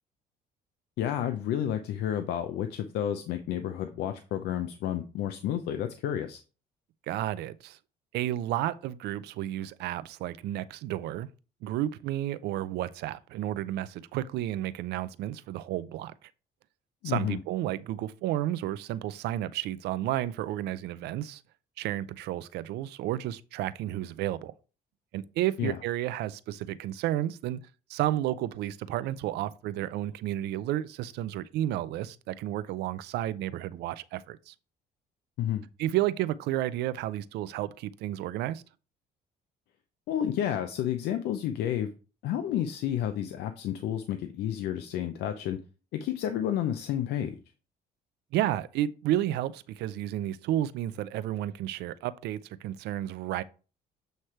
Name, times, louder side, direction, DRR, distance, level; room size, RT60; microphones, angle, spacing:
voice 1, 1.0-6.4 17.0-17.4 25.6-25.8 35.4-35.6 40.1-41.9 42.2-45.6 45.9-47.4, left 10 dB, 75° left, 0.6 m, -30 dB
voice 2, 7.1-7.8 8.1-11.3 11.6-16.3 17.0-21.4 21.8-24.5 25.1-27.6 27.9-34.5 35.8-38.6 48.3-53.4, right 13 dB, 80° right, 0.5 m, -32 dB
7.9 x 3.2 x 4.3 m
cardioid pair, 110°, 17 cm